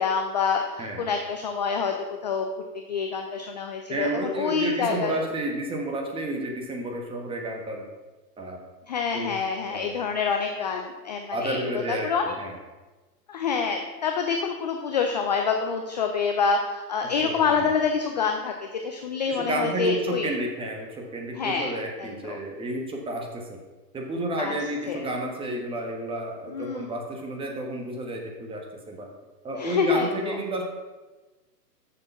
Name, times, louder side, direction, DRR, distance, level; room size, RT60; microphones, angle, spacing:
voice 1, 0.0-2.5 2.7-4.1 4.4-5.2 8.9-12.3 13.3-20.3 21.3-21.7 22.0-22.4 24.4-24.6 24.9-25.1 26.5-26.9 29.6-30.4, left 5 dB, 30° left, 4 dB, 0.4 m, -27 dB
voice 2, 3.9-7.8 8.4-8.6 9.1-9.3 9.7-10.0 11.3-12.1 12.4-12.6 17.2-17.6 19.3-23.6 23.9-28.6 28.9-29.1 29.4-30.6, right 1 dB, 10° right, 1 dB, 1.2 m, -31 dB
7.0 x 6.7 x 5.7 m, 1.2 s
hypercardioid pair, 130°, 50 cm